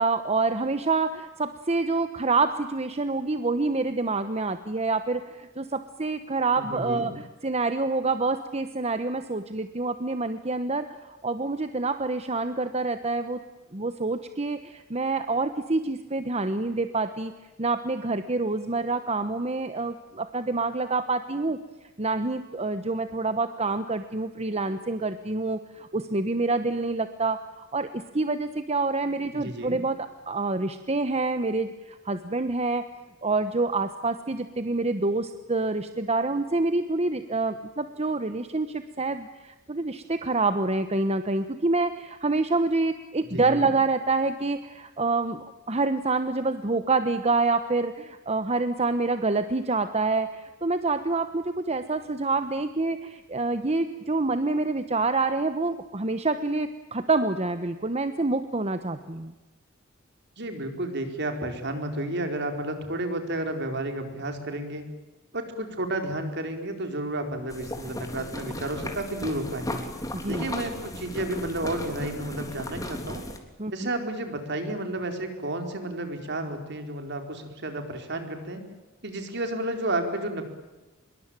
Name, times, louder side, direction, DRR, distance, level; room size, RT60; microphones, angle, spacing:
voice 1, 0.0-13.4 13.7-17.3 17.6-21.6 22.0-32.8 33.2-59.3 70.1-70.5 73.6-73.9, right 3 dB, 30° right, 10 dB, 1.1 m, -27 dB
voice 2, 6.6-7.1 29.3-29.8 43.3-43.7 60.4-64.8 65.3-69.8 70.3-73.2 73.7-78.6 79.0-80.5, right 1 dB, 55° right, 6 dB, 4.5 m, -31 dB
sound 1, 67.5-73.4, left 1 dB, 15° left, 3.5 m, -36 dB
25.5 x 23.0 x 9.1 m, 1.1 s
head